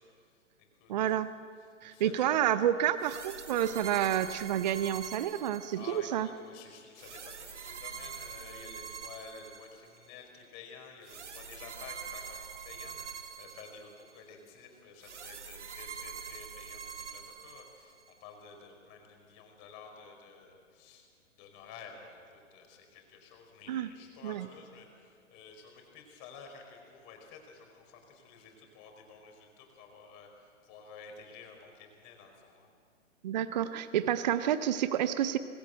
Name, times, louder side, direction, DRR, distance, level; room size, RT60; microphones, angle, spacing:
voice 1, 0.0-1.1 1.6-2.4 2.8-3.0 5.7-21.1 21.4-32.7, left 5 dB, 30° left, 3 dB, 4.7 m, -52 dB
voice 2, 0.9-1.3 1.8-6.3 23.7-23.9 24.2-24.5 33.2-35.4, right 10 dB, 35° right, 13 dB, 0.7 m, -29 dB
sound 1, 3.0-6.2 7.0-10.1 11.0-14.2 15.0-18.1, right 6 dB, 60° right, 2.1 m, -45 dB
25.0 x 19.5 x 7.8 m, 2.2 s
figure-of-eight pair, 120°, 39 cm